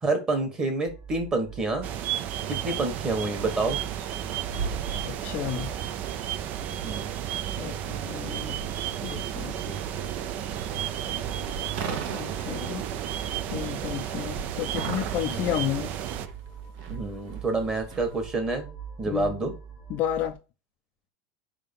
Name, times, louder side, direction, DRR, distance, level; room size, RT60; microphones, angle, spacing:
voice 1, 0.0-1.9 2.5-3.8 6.8-7.1 15.3-15.6 16.9-18.7 19.0-19.5, right 3 dB, 20° right, 1.5 m, -28 dB
sound 1, 0.9-20.3, right 7 dB, ahead, 1.0 m, -42 dB
sound 2, 1.8-16.3, right 11 dB, 35° right, 0.5 m, -33 dB
sound 3, 3.5-18.3, right 5 dB, 55° right, 1.1 m, -40 dB
voice 2, 5.0-5.7 7.6-8.6 9.0-9.8 11.7-12.8 13.5-15.9 19.1-19.4 19.9-20.4, left 11 dB, 35° left, 0.5 m, -32 dB
4.8 x 3.7 x 5.3 m
supercardioid pair, 165°, 4 cm